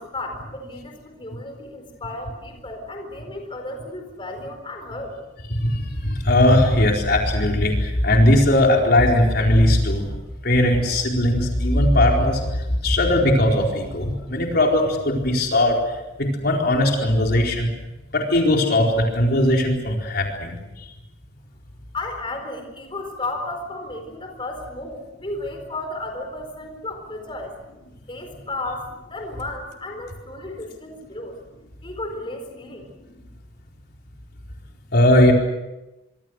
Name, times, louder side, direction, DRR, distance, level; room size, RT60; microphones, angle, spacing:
voice 1, 0.0-5.1 21.9-27.5 28.0-31.3 31.8-32.9, left 2 dB, 25° left, 3 dB, 4.4 m, -33 dB
voice 2, 5.5-10.1 10.4-15.8 16.2-17.7 18.1-20.6 34.9-35.3, left 1 dB, 55° left, 0 dB, 4.4 m, -19 dB
25.5 x 25.0 x 6.5 m, 1.0 s
head